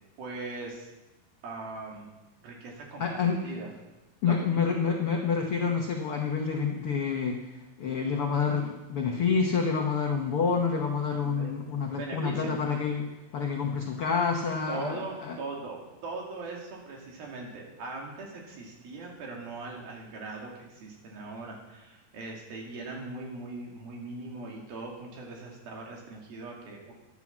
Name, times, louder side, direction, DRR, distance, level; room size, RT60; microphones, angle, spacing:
voice 1, 0.2-0.9 1.4-2.1 2.4-3.0 3.4-3.7 4.2-4.7 11.1-11.5 11.9-12.5 14.7-26.9, right 3 dB, 75° right, 0 dB, 4.3 m, -40 dB
voice 2, 3.0-3.4 4.2-7.5 7.8-13.1 13.3-15.3, left 5 dB, 90° left, 1 dB, 1.2 m, -28 dB
12.0 x 9.7 x 7.3 m, 1.0 s
omnidirectional pair, 4.3 m